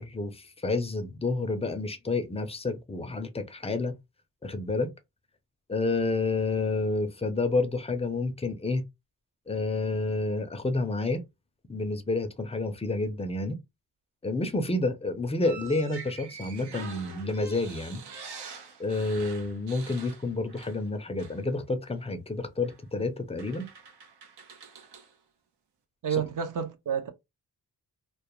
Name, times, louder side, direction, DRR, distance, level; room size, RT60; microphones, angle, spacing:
voice 1, 0.0-4.0 4.4-4.9 5.7-8.8 9.5-11.2 11.7-13.6 14.2-18.0 18.8-23.7, left 3 dB, 15° left, 0.3 m, -29 dB
sound 1, 15.4-20.9 21.2-21.4 22.6-22.8 23.4-25.1, right 5 dB, 90° right, 0.7 m, -45 dB
voice 2, 26.0-27.1, right 7 dB, 55° right, 0.5 m, -29 dB
2.2 x 2.1 x 2.9 m
wide cardioid pair, 140°, 38 cm